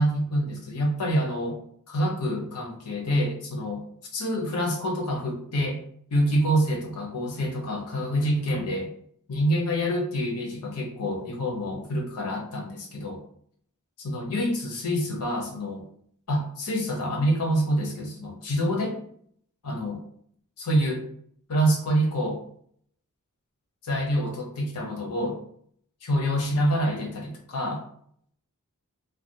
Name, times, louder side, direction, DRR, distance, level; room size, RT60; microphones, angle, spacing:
voice 1, 0.0-1.6 1.9-3.8 4.1-5.8 6.1-8.9 9.3-13.2 14.0-15.8 16.3-19.0 19.6-20.0 20.6-21.0 21.5-22.4 23.8-25.4 26.0-27.8, equal, 80° left, 1 dB, 0.7 m, -26 dB
2.3 x 2.2 x 2.6 m, 0.64 s
head